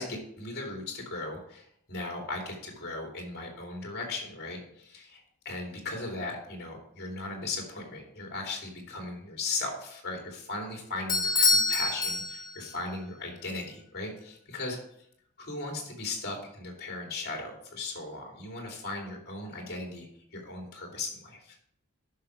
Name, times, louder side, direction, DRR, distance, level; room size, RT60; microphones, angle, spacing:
voice 1, 0.0-14.8 15.4-21.6, left 3 dB, 45° left, 0 dB, 2.9 m, -37 dB
Bell / Doorbell, 11.1-12.8, left 3 dB, 15° left, 1.0 m, -26 dB
10.5 x 6.4 x 4.6 m, 0.70 s
head